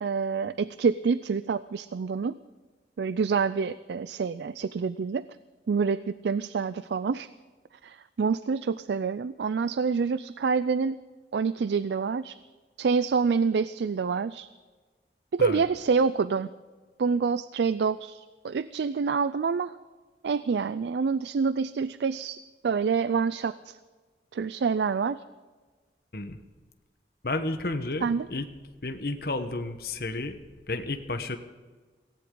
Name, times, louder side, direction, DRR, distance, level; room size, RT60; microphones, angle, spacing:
voice 1, 0.0-2.4 3.0-5.3 5.7-7.3 7.8-11.0 11.3-12.4 12.8-14.5 15.3-16.5 17.0-19.8 20.2-22.4 22.6-23.8 24.3-25.2 28.0-28.3, right 5 dB, 75° right, 15 dB, 0.4 m, -27 dB
voice 2, 27.2-28.5 28.8-30.4 30.7-31.4, left 2 dB, 60° left, 7 dB, 1.1 m, -31 dB
18.0 x 16.5 x 3.8 m, 1.4 s
head